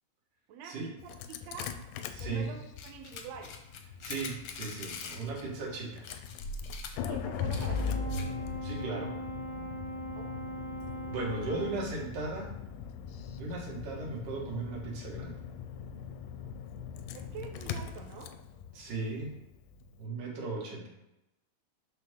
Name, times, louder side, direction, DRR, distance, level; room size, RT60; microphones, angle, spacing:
voice 1, 0.5-1.7 2.2-3.6 7.0-8.0 10.2-10.3 17.1-18.3, right 6 dB, 70° right, 3 dB, 2.0 m, -46 dB
Engine starting, 1.0-20.0, left 6 dB, 90° left, 2.2 m, -40 dB
voice 2, 2.1-2.5 4.0-6.1 8.6-9.2 11.0-12.5 13.4-15.4 18.8-19.3 20.0-20.9, right 3 dB, 90° right, -2 dB, 3.5 m, -37 dB
sound 1, 2.8-5.4 5.7-5.8 6.0-8.4, left 3 dB, 70° left, 1.4 m, -43 dB
Brass instrument, 7.5-11.9, right 1 dB, 50° right, 1.4 m, -40 dB
11.5 x 4.3 x 3.7 m, 0.89 s
omnidirectional pair, 3.6 m